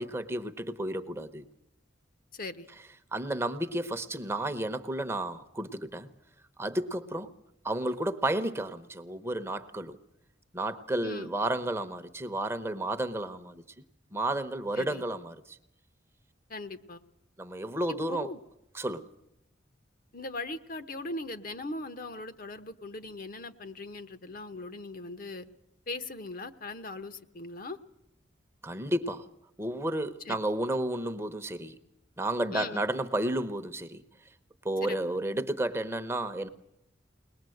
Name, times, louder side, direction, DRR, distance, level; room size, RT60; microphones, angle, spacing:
voice 1, 0.0-1.4 3.1-6.1 6.6-7.3 7.6-10.0 10.5-13.6 14.1-15.6 17.4-18.3 18.7-19.0 28.6-29.3 29.6-31.8 32.2-34.0 34.6-36.5, right 1 dB, 15° right, 0.9 m, -32 dB
voice 2, 2.3-2.7 11.0-11.3 14.7-15.0 16.5-17.0 17.9-18.4 20.1-25.4 25.9-27.8 30.3-30.4 32.5-32.9 34.8-35.0, left 2 dB, 45° left, 1.0 m, -39 dB
22.0 x 20.0 x 7.8 m
head